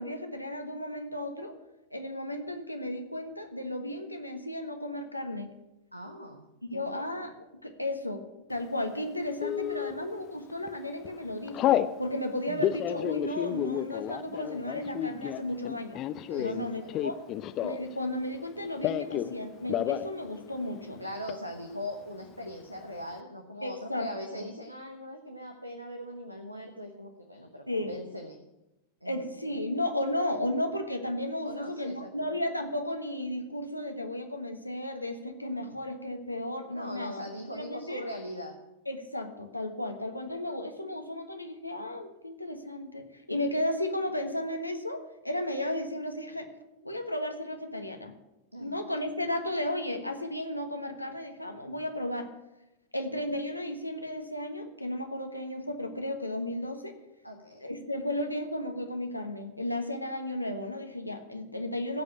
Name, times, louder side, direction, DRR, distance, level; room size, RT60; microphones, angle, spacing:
voice 1, 0.0-1.5 1.9-5.5 6.6-8.2 8.5-16.0 16.4-17.2 17.6-21.0 23.6-24.4 27.7-27.9 29.0-37.2 37.5-38.0 38.9-46.5 46.8-48.1 48.6-52.3 52.9-57.0 57.6-62.0, left 1 dB, 85° left, 5 dB, 1.3 m, -34 dB
voice 2, 5.9-6.4 6.7-7.0 16.3-17.0 21.0-28.4 29.0-29.3 31.4-32.3 36.7-38.5 48.5-48.8 57.2-57.6, left 1 dB, 90° right, 5 dB, 1.0 m, -40 dB
Telephone, 9.4-9.9 10.5-10.8 11.0-11.9 12.5-18.0 18.2-19.3 19.6-20.1 20.4-20.5 20.7-21.3, left 12 dB, 35° left, 0.6 m, -30 dB
16.0 x 5.3 x 8.7 m, 0.95 s
figure-of-eight pair, 90°, 0 cm